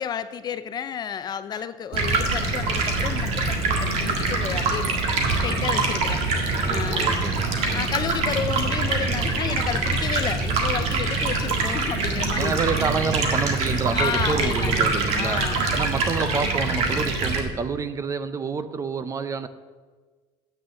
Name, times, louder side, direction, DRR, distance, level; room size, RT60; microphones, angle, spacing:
voice 1, 0.0-5.0 5.4-6.2 6.7-7.1 7.7-12.8 13.9-15.6, left 8 dB, 35° left, 0.5 m, -31 dB
Stream, 1.9-17.4, right 3 dB, 55° right, 1.8 m, -24 dB
voice 2, 6.5-7.6 12.3-19.5, right 5 dB, 25° right, 0.5 m, -28 dB
8.7 x 6.3 x 7.5 m
cardioid pair, 140°, 13 cm